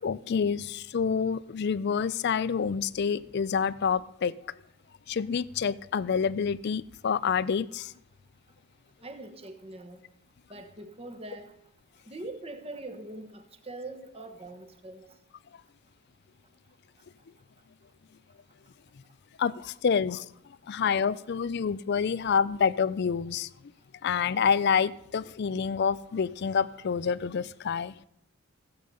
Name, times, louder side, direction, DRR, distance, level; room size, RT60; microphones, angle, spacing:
voice 1, 0.0-4.3 5.1-7.9 19.4-20.2 20.7-23.5 24.0-27.9, left 6 dB, 50° left, 19 dB, 0.4 m, -27 dB
voice 2, 9.0-10.0 10.5-11.5 12.1-15.0, right 2 dB, 25° right, 7 dB, 1.2 m, -42 dB
16.0 x 8.2 x 5.4 m, 0.78 s
head